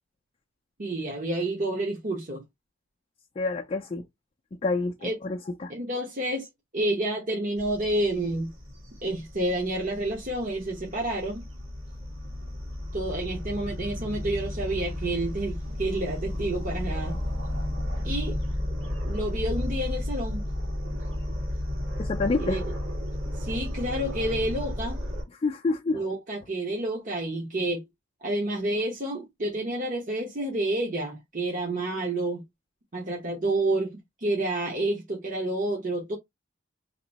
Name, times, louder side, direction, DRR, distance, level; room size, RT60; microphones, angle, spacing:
voice 1, 0.8-2.4 5.0-5.1 5.7-6.5 6.7-8.5 9.0-11.4 12.9-17.2 18.0-18.4 19.0-20.4 22.4-22.6 23.4-25.0 25.9-27.8 28.2-32.4 32.9-36.2, right 1 dB, 40° right, 0.9 m, -29 dB
voice 2, 3.4-4.0 4.6-5.7 22.0-22.6 25.3-26.1, left 3 dB, 30° left, 0.4 m, -28 dB
sound 1, 7.6-25.2, left 1 dB, 70° right, 1.6 m, -33 dB
3.0 x 2.6 x 4.0 m
head